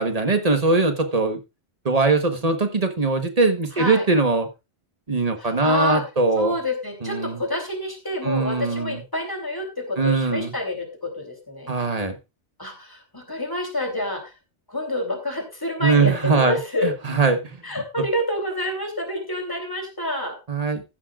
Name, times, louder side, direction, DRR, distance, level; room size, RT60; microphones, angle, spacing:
voice 1, 0.0-1.4 1.8-4.5 5.1-6.6 7.0-7.4 8.2-9.0 10.0-10.5 11.7-12.2 15.8-16.6 17.1-17.6 20.5-20.8, right 3 dB, 35° right, 7 dB, 1.3 m, -21 dB
voice 2, 3.7-4.1 5.4-6.0 6.3-11.7 12.6-14.3 14.7-16.9 17.6-20.4, left 1 dB, 20° left, 3 dB, 3.3 m, -28 dB
15.0 x 11.0 x 2.5 m, 0.27 s
omnidirectional pair, 1.2 m